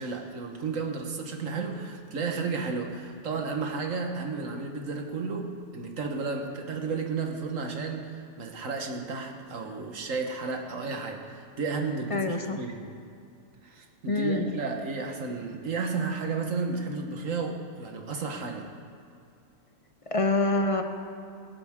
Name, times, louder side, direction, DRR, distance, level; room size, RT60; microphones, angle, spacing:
voice 1, 0.0-12.8 13.6-18.7, right 4 dB, 60° right, 3 dB, 1.7 m, -33 dB
voice 2, 12.1-12.6 14.1-14.5 20.1-20.8, left 2 dB, 35° left, 5 dB, 0.6 m, -25 dB
22.0 x 11.0 x 3.7 m, 2.4 s
omnidirectional pair, 1.5 m